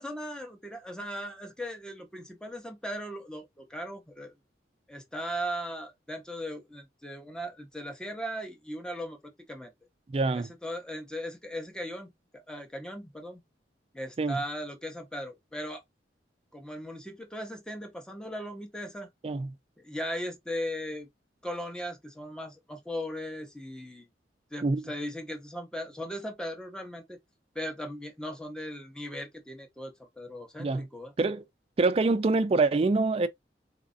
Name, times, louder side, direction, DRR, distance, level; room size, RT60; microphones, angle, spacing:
voice 1, 0.0-4.3 4.9-9.2 9.5-9.7 10.3-13.4 13.9-15.8 16.5-19.1 19.8-21.1 21.4-24.1 24.5-27.2 27.5-31.1, equal, 5° left, 0.7 m, -38 dB
voice 2, 10.1-10.5 14.2-14.4 19.2-19.5 24.6-24.8 30.6-30.9 31.2-31.4 31.8-33.3, right 3 dB, 35° right, 0.3 m, -25 dB
4.0 x 2.4 x 2.5 m
head